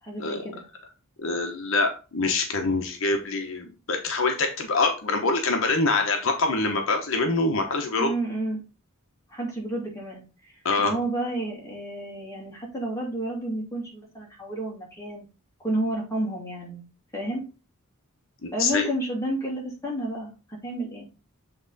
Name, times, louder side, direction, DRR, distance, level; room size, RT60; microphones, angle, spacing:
voice 1, 0.0-0.6 8.0-8.6 9.3-15.3 15.6-16.8 17.1-17.4 18.5-21.1, right 1 dB, 15° left, -2 dB, 2.6 m, -31 dB
voice 2, 1.2-8.1 10.6-10.9 18.4-18.9, left 3 dB, 60° left, 4 dB, 0.9 m, -25 dB
7.8 x 3.7 x 4.0 m, 0.32 s
head